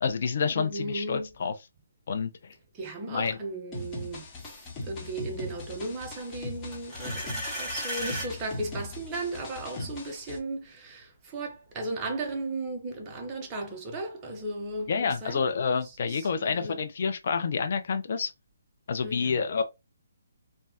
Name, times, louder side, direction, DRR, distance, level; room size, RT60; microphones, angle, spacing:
voice 1, 0.0-1.5 2.1-2.3 3.1-3.4 9.7-9.9 14.9-18.3 18.9-19.6, left 5 dB, 55° left, 0.4 m, -28 dB
voice 2, 0.6-1.3 2.8-4.2 4.9-7.3 7.6-15.4 16.4-16.8 19.0-19.6, right 2 dB, 20° right, 0.7 m, -35 dB
sound 1, 3.7-10.4, left 2 dB, 20° left, 0.9 m, -40 dB
sound 2, 6.7-8.3, equal, ahead, 1.1 m, -34 dB
3.1 x 2.2 x 2.8 m
hypercardioid pair, 150°, 0 cm